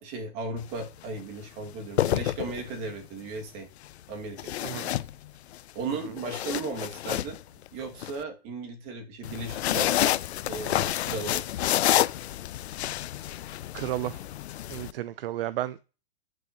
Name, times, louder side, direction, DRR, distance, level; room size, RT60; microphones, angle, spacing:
voice 1, 0.0-3.7 4.1-5.0 5.7-7.4 7.7-10.2 10.5-11.4, right 3 dB, 35° right, 2.2 m, -36 dB
sound 1, 0.6-0.8 1.7-2.9 4.4-5.6 6.0-8.1 9.2-14.9, left 13 dB, 85° left, 0.5 m, -29 dB
voice 2, 4.6-4.9 13.7-14.2 14.7-15.8, right 14 dB, 60° right, 0.5 m, -32 dB
11.5 x 6.3 x 3.0 m
hypercardioid pair, 150°, 32 cm